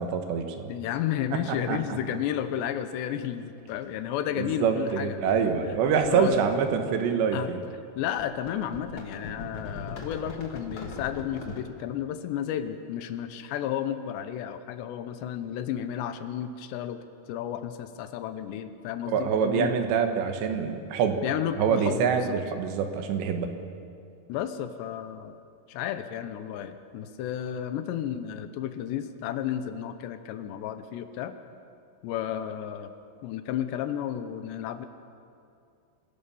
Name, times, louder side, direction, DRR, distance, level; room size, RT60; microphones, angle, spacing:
voice 1, 0.0-0.7 1.7-1.8 4.4-7.6 19.1-21.2 21.6-23.5, right 6 dB, 75° right, 6 dB, 3.5 m, -25 dB
voice 2, 0.7-5.2 6.1-6.4 7.3-7.5 8.0-17.0 17.3-19.7 21.2-22.4 24.3-25.4 25.7-31.3 32.0-32.9 33.2-34.9, left 10 dB, 80° left, 10 dB, 3.1 m, -32 dB
sound 1, 1.6-1.7 3.2-3.4 3.7-3.9 4.5-4.7 5.0-7.1 8.2-11.6, left 3 dB, 40° left, 2.4 m, -41 dB
25.5 x 16.5 x 7.1 m, 2.5 s
omnidirectional pair, 5.2 m